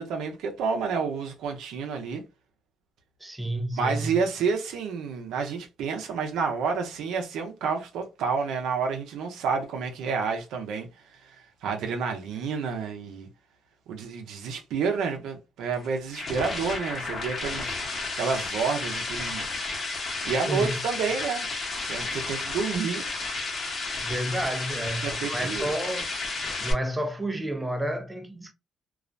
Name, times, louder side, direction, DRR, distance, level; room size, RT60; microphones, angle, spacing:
voice 1, 0.0-2.2 3.8-13.3 13.9-17.8 18.1-19.4 20.2-21.5 21.8-23.0 24.8-25.8, right 5 dB, 85° right, 0.6 m, -29 dB
voice 2, 3.2-4.2 20.5-20.8 24.0-28.5, right 1 dB, 10° right, 0.5 m, -31 dB
sound 1, 15.7-26.7, left 3 dB, 45° left, 0.9 m, -32 dB
2.4 x 2.1 x 2.5 m
cardioid pair, 90°, 0 cm